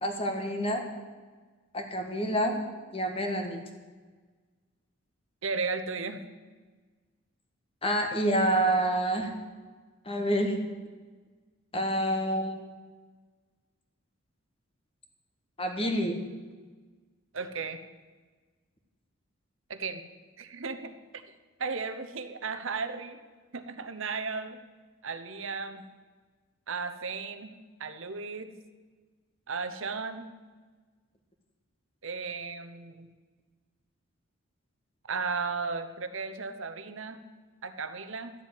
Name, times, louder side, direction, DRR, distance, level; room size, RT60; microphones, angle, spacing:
voice 1, 0.0-0.9 1.7-2.6 2.9-3.6 7.8-9.3 10.0-10.6 11.7-12.5 15.6-16.2, right 1 dB, 25° left, 4 dB, 1.6 m, -27 dB
voice 2, 5.4-6.2 17.3-17.8 19.7-20.0 20.4-21.2 21.6-23.2 23.5-24.6 25.0-25.9 26.7-28.5 29.5-30.3 32.0-33.1 35.1-37.2 37.6-38.3, right 4 dB, 65° right, 9 dB, 1.0 m, -35 dB
12.5 x 7.4 x 9.6 m, 1.4 s
head